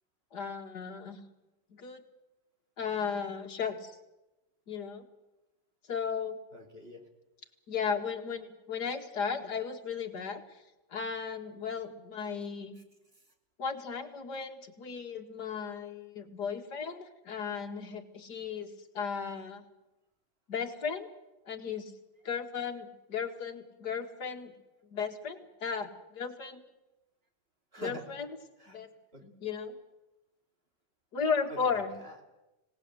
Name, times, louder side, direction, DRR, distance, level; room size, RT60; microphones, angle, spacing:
voice 1, 0.3-1.2 1.7-2.0 2.8-4.0 4.7-5.1 5.9-6.4 7.7-10.4 10.9-12.8 13.6-19.6 20.5-21.1 21.5-21.9 22.2-24.5 24.8-26.6 27.8-28.3 28.7-28.9 29.2-29.8 31.1-31.9, left 6 dB, 60° left, 4 dB, 2.5 m, -35 dB
voice 2, 6.5-7.0 27.7-28.1 28.6-28.8 29.1-29.2 31.5-32.2, right 1 dB, 30° right, 2 dB, 3.2 m, -45 dB
25.5 x 18.5 x 8.1 m, 1.0 s
omnidirectional pair, 2.0 m